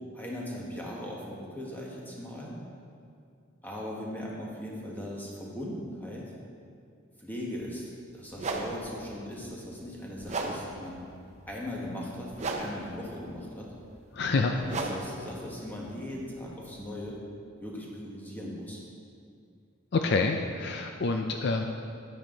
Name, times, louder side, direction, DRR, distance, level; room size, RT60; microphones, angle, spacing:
voice 1, 0.1-2.6 3.6-6.3 7.2-11.0 11.5-13.7 14.4-17.2 17.6-18.8, left 1 dB, 10° left, -4 dB, 1.5 m, -39 dB
sound 1, 7.6-7.7 8.3-17.2, right 3 dB, 35° right, 0.8 m, -38 dB
voice 2, 14.1-14.5 19.9-21.6, left 3 dB, 55° left, 4 dB, 0.5 m, -27 dB
9.9 x 9.2 x 3.9 m, 2.4 s
head